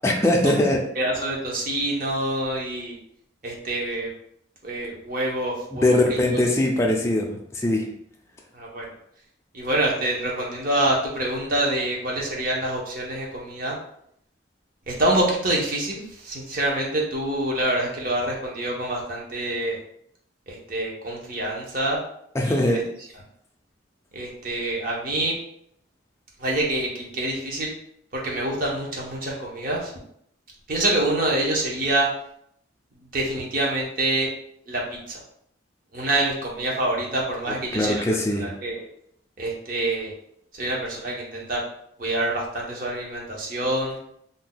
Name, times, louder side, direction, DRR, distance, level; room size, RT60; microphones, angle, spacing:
voice 1, 0.0-0.8 5.8-7.9 22.3-22.8 37.7-38.5, left 1 dB, 15° left, 0 dB, 0.4 m, -21 dB
voice 2, 1.0-3.0 3.4-4.1 4.6-5.9 8.5-8.8 9.5-13.8 14.9-19.8 20.5-22.0 22.4-22.7 24.1-25.3 26.4-27.7 28.1-29.9 30.7-32.1 33.1-34.3 34.7-34.8 35.1-35.2 35.9-38.0 38.3-38.8 39.4-40.1 40.5-41.6 42.0-44.0, right 1 dB, 45° right, -2 dB, 0.8 m, -26 dB
2.6 x 2.2 x 3.8 m, 0.70 s
head